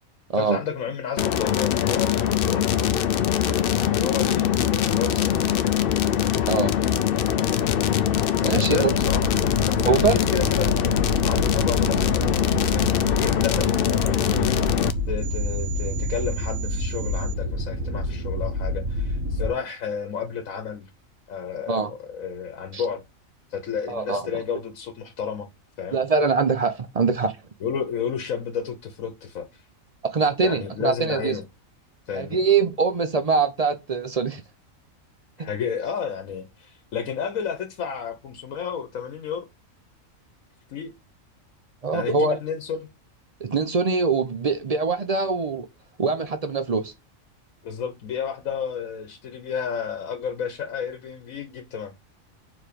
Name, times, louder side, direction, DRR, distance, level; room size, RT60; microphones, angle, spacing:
voice 1, 0.3-2.7 3.8-4.5 4.8-5.7 8.4-9.2 9.6-14.6 15.1-20.9 21.3-23.0 23.5-25.5 25.8-26.0 27.6-29.6 30.4-31.4 32.1-32.4 35.4-39.5 40.7-40.9 41.9-42.9 47.6-51.9, left 7 dB, 80° left, 1.3 m, -31 dB
sound 1, 1.2-14.9, left 9 dB, 60° left, 0.6 m, -22 dB
voice 2, 8.4-8.9 9.8-10.2 21.7-21.9 22.7-22.8 23.9-24.3 25.9-27.3 30.1-31.4 32.1-34.4 41.8-42.4 43.4-45.7 46.0-46.9, right 4 dB, 45° right, 0.5 m, -23 dB
sound 2, 8.8-19.5, left 1 dB, 75° right, 2.0 m, -28 dB
4.7 x 3.9 x 5.1 m
omnidirectional pair, 1.4 m